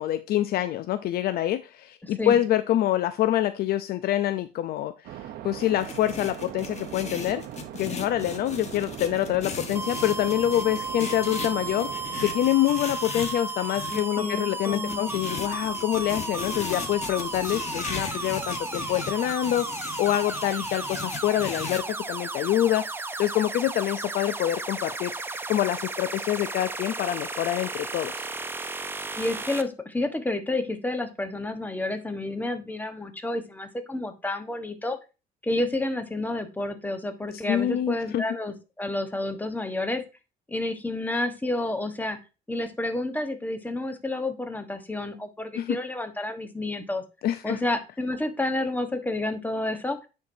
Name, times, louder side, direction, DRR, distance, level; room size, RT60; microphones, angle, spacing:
voice 1, 0.0-7.4 7.7-11.9 12.2-22.8 23.2-25.1 25.5-28.3 37.5-38.2 45.5-45.8 47.2-47.6, left 12 dB, 65° left, 11 dB, 0.5 m, -26 dB
voice 2, 2.0-2.4 13.9-15.1 29.2-35.0 35.4-40.0 40.5-42.2 42.5-47.0 47.4-50.0, left 2 dB, 10° left, 7 dB, 1.1 m, -30 dB
sound 1, 5.0-12.5, right 11 dB, 75° right, 0.8 m, -40 dB
sound 2, 5.6-14.0 14.7-21.8, left 5 dB, 40° left, 1.3 m, -37 dB
sound 3, 9.7-29.6, right 3 dB, 15° right, 0.6 m, -34 dB
9.4 x 4.6 x 2.7 m, 0.30 s
cardioid pair, 110°, 17 cm